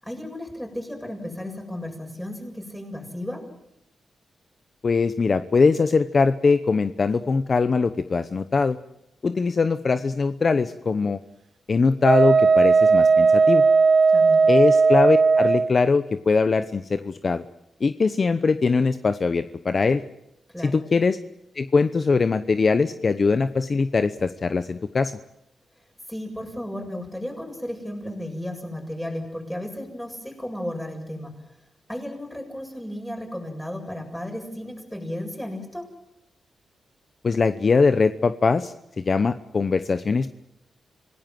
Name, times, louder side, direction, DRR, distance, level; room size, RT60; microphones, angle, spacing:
voice 1, 0.0-3.4 9.2-9.4 14.1-14.4 20.5-20.8 26.1-31.4 31.9-35.9, left 1 dB, 5° left, 2 dB, 7.6 m, -34 dB
voice 2, 4.8-8.8 9.2-11.2 11.7-13.6 14.5-17.4 17.8-20.0 20.6-21.2 21.6-25.1 37.2-40.4, left 4 dB, 45° left, 11 dB, 0.9 m, -21 dB
Wind instrument woodwind instrument, 12.0-15.7, right 4 dB, 60° right, 1.1 m, -16 dB
27.0 x 18.5 x 7.8 m, 0.84 s
cardioid pair, 95°, 0 cm